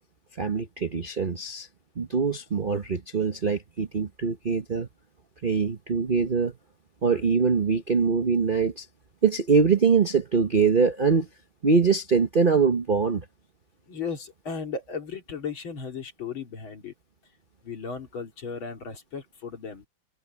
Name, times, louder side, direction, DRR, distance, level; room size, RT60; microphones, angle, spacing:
voice 1, 0.4-1.7 2.0-4.9 5.4-6.5 7.0-8.8 9.2-11.3 11.6-13.2, right 5 dB, 40° right, 0.7 m, -23 dB
voice 2, 13.9-16.9 17.6-19.8, left 5 dB, 65° left, 3.6 m, -35 dB
omnidirectional pair, 2.4 m